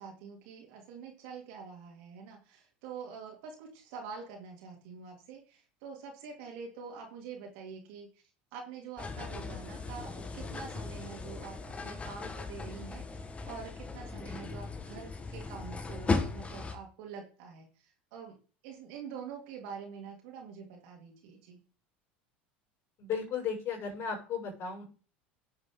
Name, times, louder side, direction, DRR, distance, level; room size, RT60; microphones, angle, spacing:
voice 1, 0.0-8.1 8.5-18.3 18.6-21.6, right 6 dB, 65° right, 1 dB, 3.0 m, -46 dB
sound 1, 9.0-16.7, left 3 dB, 20° left, 1.5 m, -37 dB
voice 2, 23.0-24.8, left 6 dB, 50° left, -2 dB, 6.3 m, -35 dB
10.0 x 7.9 x 3.9 m, 0.38 s
hypercardioid pair, 80°, 6 cm